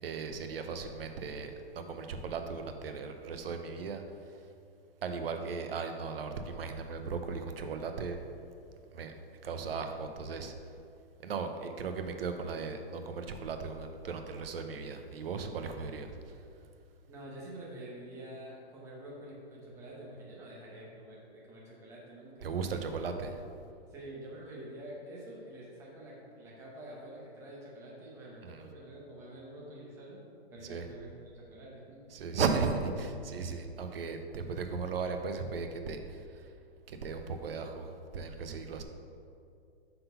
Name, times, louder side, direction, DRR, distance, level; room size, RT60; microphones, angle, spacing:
voice 1, 0.0-4.0 5.0-8.2 8.9-9.1 9.4-10.5 11.2-16.2 22.4-23.3 28.4-28.7 30.7-30.8 32.1-36.2 36.9-38.8, right 5 dB, 65° right, 6 dB, 0.7 m, -36 dB
voice 2, 17.1-22.9 23.2-23.3 23.9-30.2 30.5-32.0, right 1 dB, 10° right, -5 dB, 0.7 m, -47 dB
5.8 x 3.9 x 5.5 m, 2.4 s
hypercardioid pair, 160°, 32 cm